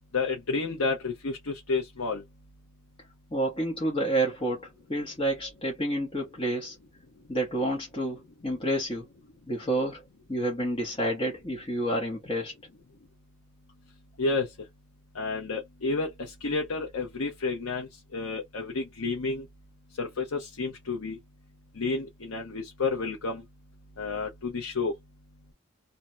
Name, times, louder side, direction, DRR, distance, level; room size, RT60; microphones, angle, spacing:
voice 1, 0.1-2.2 14.2-14.7 15.1-19.5 20.0-21.2 21.7-23.4 24.0-25.0, left 3 dB, 80° left, 0.8 m, -30 dB
voice 2, 3.3-6.8 7.3-9.1 9.5-10.0 10.3-12.5, right 1 dB, 25° left, 0.8 m, -29 dB
2.6 x 2.2 x 3.0 m
head